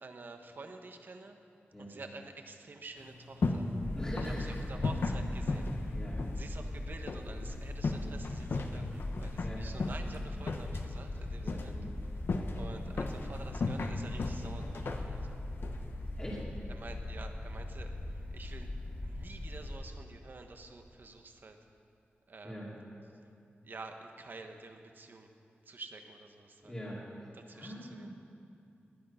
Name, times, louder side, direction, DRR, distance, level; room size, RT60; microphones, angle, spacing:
voice 1, 0.0-1.4 1.8-3.7 4.2-6.0 6.3-11.7 12.5-15.4 16.7-18.7 19.0-21.6 22.3-22.6 23.6-25.3 25.6-26.8 27.3-28.1, right 3 dB, 55° right, 5 dB, 1.1 m, -49 dB
sound 1, 3.0-16.4, left 3 dB, 65° left, 1.0 m, -37 dB
sound 2, 3.8-19.8, left 1 dB, 45° left, 2.6 m, -40 dB
voice 2, 3.9-4.6 5.9-6.2 9.4-9.6 11.4-11.6 12.3-12.5 16.2-16.4 22.4-22.7 26.6-27.0 27.5-28.1, equal, 20° left, -8 dB, 2.4 m, -42 dB
18.5 x 11.5 x 5.7 m, 2.6 s
wide cardioid pair, 135°, 4 cm